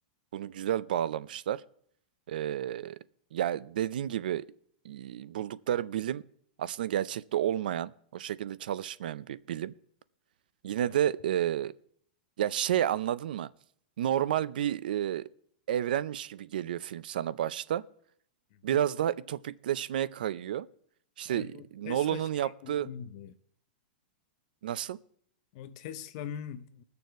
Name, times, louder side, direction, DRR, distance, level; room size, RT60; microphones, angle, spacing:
voice 1, 0.3-1.6 2.3-3.0 3.3-4.4 4.8-6.2 6.6-9.7 10.6-11.7 12.4-13.5 14.0-15.3 15.7-17.8 18.6-20.7 21.2-22.9 24.6-25.0, right 11 dB, 65° right, 0.5 m, -31 dB
voice 2, 21.3-23.3 25.5-26.8, left 9 dB, 35° left, 0.7 m, -42 dB
20.0 x 6.8 x 4.6 m
supercardioid pair, 180°, 5 cm